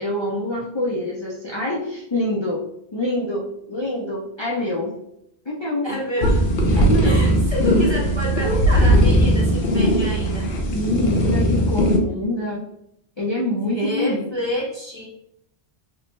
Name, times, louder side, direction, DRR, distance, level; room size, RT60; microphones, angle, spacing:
voice 1, 0.0-2.6 2.9-4.9 5.5-5.9 6.8-7.2 10.7-12.6 13.2-14.3, left 1 dB, 45° left, -3 dB, 0.4 m, -25 dB
voice 2, 5.8-6.4 7.0-10.5 13.7-15.0, equal, 30° right, -4 dB, 0.7 m, -28 dB
sound 1, 6.2-12.0, equal, 60° left, 0.8 m, -18 dB
3.3 x 2.0 x 3.1 m, 0.78 s
omnidirectional pair, 1.1 m